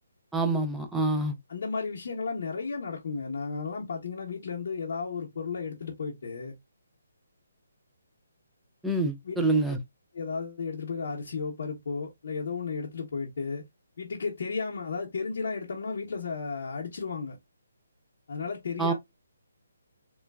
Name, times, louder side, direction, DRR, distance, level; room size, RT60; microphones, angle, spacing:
voice 1, 0.3-1.3 8.8-9.8 18.8-18.9, right 2 dB, 5° right, 0.3 m, -26 dB
voice 2, 1.5-6.5 9.2-9.4 10.1-13.6 14.0-17.4 18.3-18.9, left 5 dB, 55° left, 0.8 m, -34 dB
3.1 x 2.2 x 2.2 m
hypercardioid pair, 170°, 0 cm